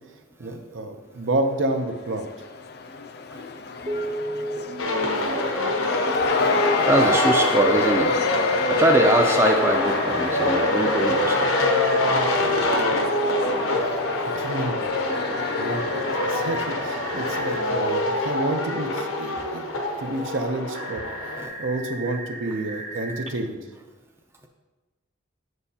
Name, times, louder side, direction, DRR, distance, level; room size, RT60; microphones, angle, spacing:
voice 1, 0.4-2.2 14.3-14.8 15.6-15.8 16.3-19.6 20.0-21.0 21.6-23.6, right 2 dB, 70° right, 6 dB, 0.6 m, -29 dB
Cheering / Crowd, 1.6-18.5, left 4 dB, 50° left, 0.4 m, -31 dB
Telephone, 3.9-4.6 6.4-12.0 15.1-17.6 20.7-23.3, left 1 dB, 30° right, 0.7 m, -35 dB
sound 1, 4.8-21.5, left 1 dB, 85° left, 0.8 m, -24 dB
voice 2, 6.8-8.2 8.7-11.6 12.4-12.5 21.4-21.5 22.5-22.6, right 1 dB, 10° right, 3 dB, 0.4 m, -22 dB
7.9 x 6.3 x 2.8 m, 1.2 s
head